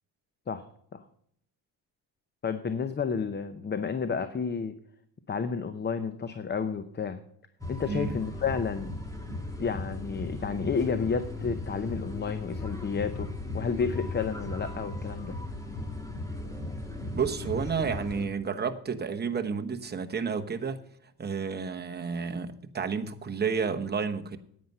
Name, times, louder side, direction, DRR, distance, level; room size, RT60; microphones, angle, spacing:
voice 1, 2.4-4.7 5.3-7.2 7.7-8.9 9.6-15.4, left 5 dB, 25° left, 0.7 m, -31 dB
sound 1, 7.6-18.3, left 2 dB, 10° left, 1.9 m, -37 dB
voice 2, 7.8-8.2 17.1-20.8 21.2-24.4, right 6 dB, 25° right, 1.1 m, -31 dB
10.0 x 9.5 x 5.5 m
cardioid pair, 115°, 41 cm